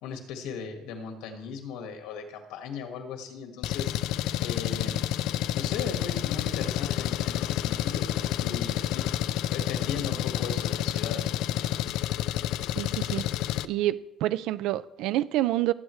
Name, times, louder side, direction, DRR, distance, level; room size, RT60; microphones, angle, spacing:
voice 1, 0.0-3.9 4.4-4.9 5.5-8.1 8.4-9.0 9.5-11.3, left 5 dB, 85° left, 4 dB, 1.8 m, -37 dB
Engine, 3.6-13.7, left 13 dB, 70° left, 0.4 m, -29 dB
voice 2, 12.8-13.2 13.6-15.7, right 14 dB, 70° right, 16 dB, 0.4 m, -27 dB
19.5 x 8.6 x 3.2 m, 0.92 s
cardioid pair, 160°, 0 cm